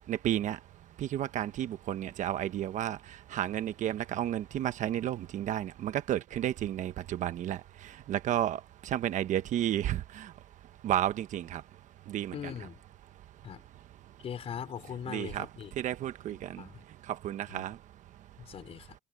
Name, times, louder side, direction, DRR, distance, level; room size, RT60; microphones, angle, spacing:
voice 1, 0.1-0.6 1.0-3.0 3.3-7.6 8.1-8.6 8.9-10.3 10.8-11.6 12.1-12.5 15.1-15.5 15.8-16.6 17.2-17.7, right 11 dB, 45° right, 1.2 m, -32 dB
voice 2, 12.3-12.8 13.4-13.6 14.2-15.7 16.5-16.8 17.5-17.7 18.4-19.0, left 8 dB, 35° left, 3.8 m, -40 dB
cardioid pair, 125°, 17 cm